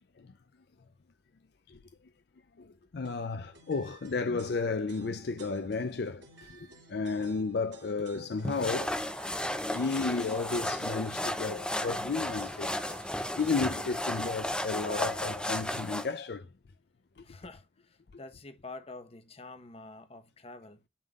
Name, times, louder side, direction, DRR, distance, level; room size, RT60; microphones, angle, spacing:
voice 1, 2.6-9.0 9.7-12.7 13.3-16.5 17.2-17.3, left 4 dB, 60° left, 0.5 m, -33 dB
sound 1, 3.0-13.9, right 4 dB, 75° right, 2.7 m, -56 dB
voice 2, 6.6-7.0 17.2-20.8, left 3 dB, 35° left, 0.9 m, -48 dB
sound 2, 8.4-16.1, left 1 dB, 5° left, 0.6 m, -34 dB
11.0 x 3.7 x 2.3 m
head